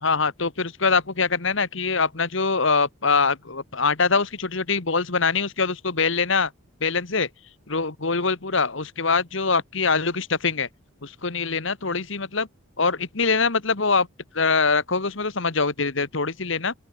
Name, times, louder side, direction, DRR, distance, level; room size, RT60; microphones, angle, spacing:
voice 1, 0.0-6.5 6.8-7.3 7.7-10.7 11.0-12.5 12.8-14.1 14.3-16.7, left 4 dB, 60° left, 1.6 m, -23 dB
open air
head